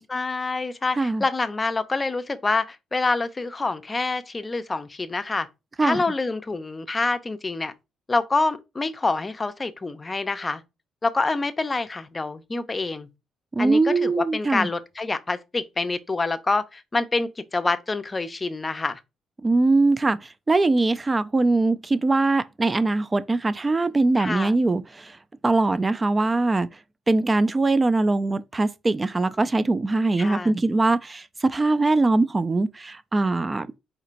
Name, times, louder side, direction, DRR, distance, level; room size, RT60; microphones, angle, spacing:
voice 1, 0.1-5.5 5.8-7.7 8.1-10.6 11.0-13.1 13.6-19.0 24.2-24.5 30.2-30.5, left 3 dB, 25° left, 0.6 m, -26 dB
voice 2, 13.5-14.7 19.4-20.2 20.5-25.1 25.4-26.7 27.1-33.7, right 2 dB, 25° right, 0.4 m, -22 dB
4.3 x 3.9 x 2.5 m
cardioid pair, 90°, 0 cm